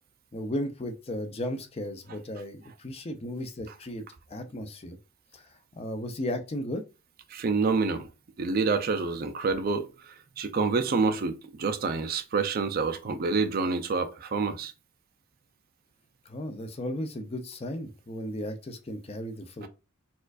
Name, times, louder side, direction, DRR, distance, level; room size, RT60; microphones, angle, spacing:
voice 1, 0.3-4.0 4.3-5.0 5.3-5.4 5.8-6.8 16.3-19.7, left 1 dB, 25° left, 0.5 m, -35 dB
voice 2, 7.3-8.1 8.4-9.9 10.4-14.7, right 4 dB, 45° right, 0.4 m, -27 dB
4.3 x 2.4 x 2.4 m
head